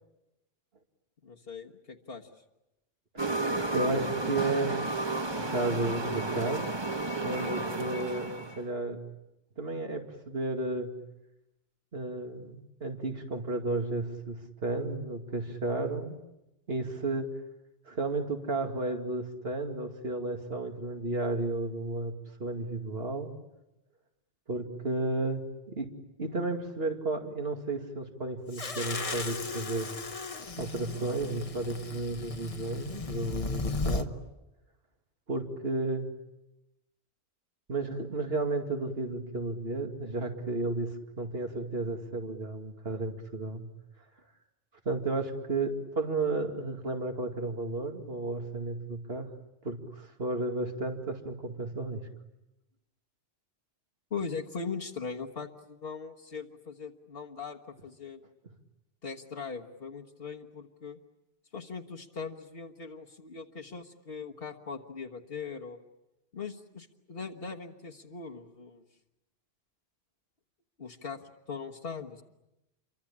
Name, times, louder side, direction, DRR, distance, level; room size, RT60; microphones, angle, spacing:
voice 1, 1.2-2.3 54.1-58.2 59.0-61.0 61.5-65.8 66.3-68.8 70.8-72.2, left 5 dB, 65° left, 0 dB, 1.7 m, -40 dB
voice 2, 3.1-4.7 5.4-6.7 7.2-9.0 9.6-10.9 11.9-16.2 16.7-17.3 17.9-22.1 22.4-23.3 24.5-25.9 26.2-29.9 30.6-34.1 35.3-36.1 37.7-43.6 44.8-49.3 49.6-52.0, right 2 dB, 75° right, 5 dB, 2.6 m, -33 dB
sound 1, 3.2-8.6, right 2 dB, 25° right, 1.2 m, -32 dB
sound 2, 28.5-34.1, left 3 dB, 35° left, 1.1 m, -36 dB
28.5 x 24.0 x 8.6 m, 0.92 s
omnidirectional pair, 1.0 m